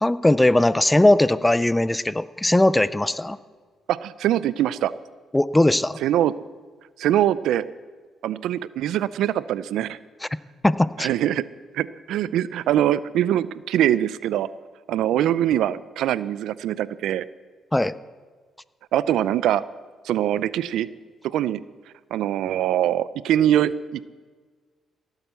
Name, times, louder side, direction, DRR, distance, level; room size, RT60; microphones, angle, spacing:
voice 1, 0.0-3.4 5.3-6.0 10.6-11.1 17.7-18.0, left 1 dB, 10° left, 16 dB, 0.5 m, -19 dB
voice 2, 3.9-4.9 6.0-6.3 7.0-7.6 8.2-10.0 11.0-11.4 11.7-14.5 14.9-17.2 18.9-19.6 20.0-20.9 21.2-21.6 22.1-24.0, right 11 dB, 85° right, 17 dB, 0.4 m, -23 dB
16.5 x 9.0 x 6.9 m, 1.5 s
cardioid pair, 90°, 0 cm